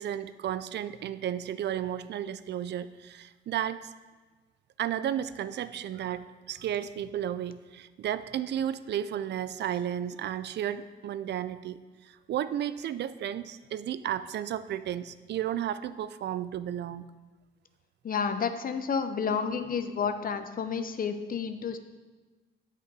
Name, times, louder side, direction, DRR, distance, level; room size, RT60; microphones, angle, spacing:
voice 1, 0.0-3.9 4.8-17.0, right 10 dB, 60° right, 14 dB, 0.4 m, -33 dB
voice 2, 18.0-21.8, left 6 dB, 45° left, 10 dB, 0.7 m, -30 dB
8.3 x 8.3 x 4.8 m, 1.3 s
cardioid pair, 90°, 20 cm